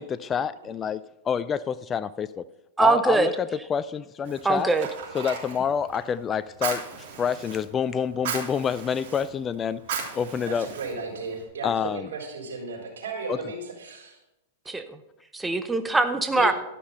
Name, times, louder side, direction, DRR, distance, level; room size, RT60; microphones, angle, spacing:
voice 1, 0.0-2.4 2.8-4.7 5.1-6.8 7.2-9.8 10.1-10.7 11.6-12.1 13.3-13.4, left 7 dB, 25° left, 15 dB, 0.3 m, -27 dB
voice 2, 2.8-3.3 4.4-4.9 14.7-14.8 15.3-16.5, right 3 dB, 10° right, 8 dB, 0.6 m, -22 dB
Fire, 4.2-11.4, right 6 dB, 60° right, 2.9 m, -37 dB
voice 3, 10.5-14.2 16.3-16.5, right 3 dB, 85° right, -1 dB, 4.0 m, -35 dB
13.0 x 5.9 x 5.5 m, 0.95 s
hypercardioid pair, 125°, 0 cm